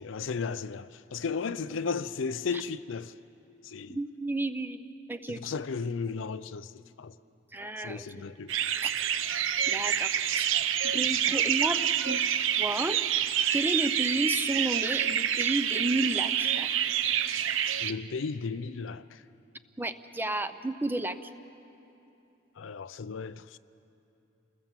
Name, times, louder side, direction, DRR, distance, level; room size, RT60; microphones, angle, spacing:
voice 1, 0.0-3.1 3.6-4.0 5.3-7.1 7.8-8.5 11.1-11.2 17.8-19.2 22.6-23.6, left 5 dB, 75° left, 0.5 m, -35 dB
voice 2, 3.9-5.6 7.5-8.2 8.8-8.9 9.7-10.5 10.8-11.8 12.1-12.3 12.6-13.0 13.5-16.7 19.8-21.2, right 2 dB, 10° right, 0.6 m, -32 dB
sound 1, 8.5-17.9, right 9 dB, 80° right, 0.6 m, -27 dB
28.5 x 20.5 x 7.5 m
head